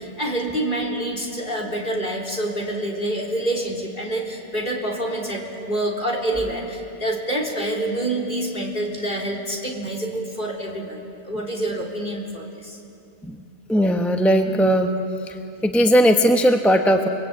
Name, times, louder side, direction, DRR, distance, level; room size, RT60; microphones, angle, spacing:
voice 1, 0.0-11.0 11.2-12.8, right 1 dB, 45° left, 0 dB, 3.7 m, -27 dB
voice 2, 13.7-14.9 15.6-17.1, equal, ahead, 4 dB, 1.0 m, -17 dB
30.0 x 21.0 x 8.6 m, 2.6 s
omnidirectional pair, 1.2 m